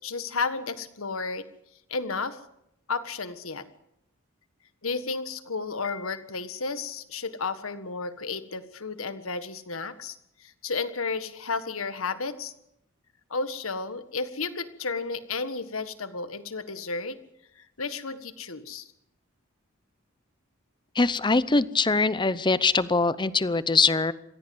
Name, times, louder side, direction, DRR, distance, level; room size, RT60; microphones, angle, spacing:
voice 1, 0.0-1.5 1.9-2.4 2.9-3.7 4.8-12.5 13.3-17.2 17.6-18.9, left 4 dB, 75° left, 11 dB, 1.6 m, -32 dB
voice 2, 20.9-24.1, left 3 dB, 20° left, 16 dB, 0.7 m, -23 dB
24.5 x 16.5 x 7.8 m, 0.80 s
head